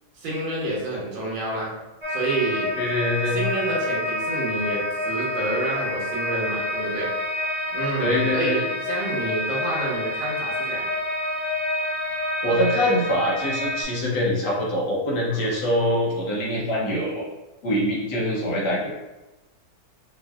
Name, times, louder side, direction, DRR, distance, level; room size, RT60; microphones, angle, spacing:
voice 1, 0.2-1.7 2.1-2.7 3.3-7.1 7.7-10.8 15.3-15.6, right 2 dB, 75° right, -5 dB, 1.8 m, -29 dB
sound 1, 2.0-13.8, left 1 dB, 25° right, 0.6 m, -28 dB
voice 2, 2.8-3.4 8.0-8.6 12.4-17.2 17.6-18.9, left 1 dB, 65° left, -3 dB, 1.4 m, -24 dB
5.2 x 2.5 x 2.3 m, 1.0 s
omnidirectional pair, 2.1 m